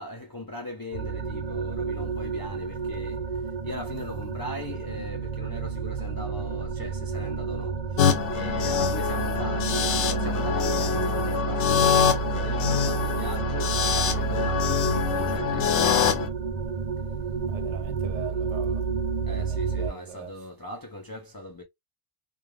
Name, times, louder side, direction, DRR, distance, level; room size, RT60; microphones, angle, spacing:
voice 1, 0.0-16.2 19.2-21.6, left 1 dB, 30° left, 0.4 m, -39 dB
sound 1, 0.9-19.9, right 5 dB, 45° right, 0.6 m, -30 dB
sound 2, 8.0-16.3, left 7 dB, 85° left, 0.9 m, -25 dB
voice 2, 17.4-18.9 19.3-20.3, right 8 dB, 85° right, 0.9 m, -41 dB
2.4 x 2.4 x 3.1 m
omnidirectional pair, 1.2 m